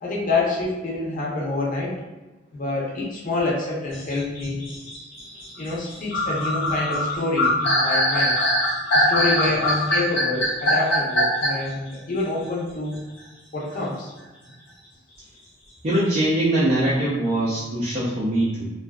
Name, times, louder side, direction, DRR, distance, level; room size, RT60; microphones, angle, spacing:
voice 1, 0.0-1.9 2.5-4.6 5.6-8.4 8.9-13.0 13.5-14.1, left 2 dB, 45° left, -4 dB, 0.6 m, -27 dB
sound 1, 3.9-11.7, equal, 85° left, 0.9 m, -22 dB
voice 2, 15.8-18.7, right 1 dB, 35° right, -9 dB, 0.4 m, -22 dB
2.5 x 2.3 x 2.3 m, 1.1 s
head